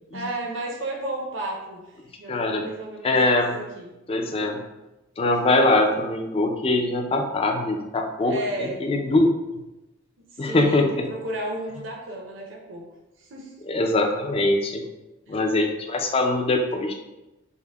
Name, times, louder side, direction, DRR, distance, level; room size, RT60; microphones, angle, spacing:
voice 1, 0.1-3.9 5.3-5.7 8.2-8.8 10.3-12.8 13.2-13.5 15.3-15.4, right 1 dB, 65° right, 0 dB, 0.6 m, -33 dB
voice 2, 2.3-2.6 3.0-3.6 4.1-4.6 5.2-9.3 10.4-11.1 13.6-14.8 15.3-16.9, left 2 dB, 30° left, 3 dB, 0.4 m, -22 dB
5.5 x 2.1 x 3.4 m, 0.99 s
head